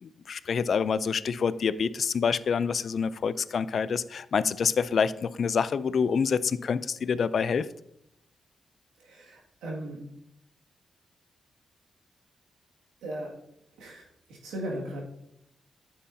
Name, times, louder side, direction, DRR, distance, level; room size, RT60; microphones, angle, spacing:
voice 1, 0.0-7.7, left 6 dB, 65° left, 16 dB, 0.4 m, -27 dB
voice 2, 9.0-10.2 13.0-13.5 13.8-15.0, right 1 dB, 90° right, -2 dB, 2.1 m, -38 dB
9.9 x 7.6 x 2.7 m, 0.79 s
supercardioid pair, 55°, 0 cm